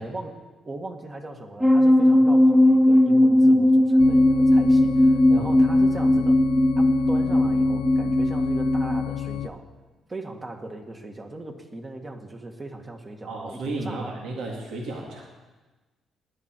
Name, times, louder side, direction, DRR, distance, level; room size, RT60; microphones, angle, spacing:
voice 1, 0.0-6.4 6.8-9.7 10.1-14.1, right 2 dB, 30° right, 4 dB, 1.9 m, -38 dB
sound 1, 1.6-9.0, left 1 dB, 15° right, 1.1 m, -18 dB
sound 2, 4.0-9.5, left 11 dB, 85° left, 0.4 m, -32 dB
voice 2, 13.2-15.3, right 2 dB, 85° right, -1 dB, 2.2 m, -33 dB
18.5 x 11.0 x 4.6 m, 1.2 s
cardioid pair, 90°, 0 cm